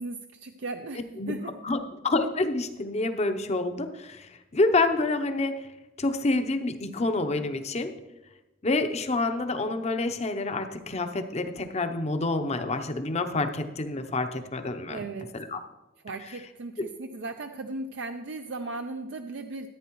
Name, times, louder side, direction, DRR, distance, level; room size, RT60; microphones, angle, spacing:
voice 1, 0.0-1.5 14.9-15.3 16.0-19.7, right 3 dB, 70° right, 6 dB, 0.5 m, -37 dB
voice 2, 1.6-5.7 6.0-7.9 8.6-15.1 15.3-15.6, left 2 dB, 35° left, 8 dB, 0.7 m, -28 dB
14.0 x 9.1 x 3.1 m, 1.0 s
head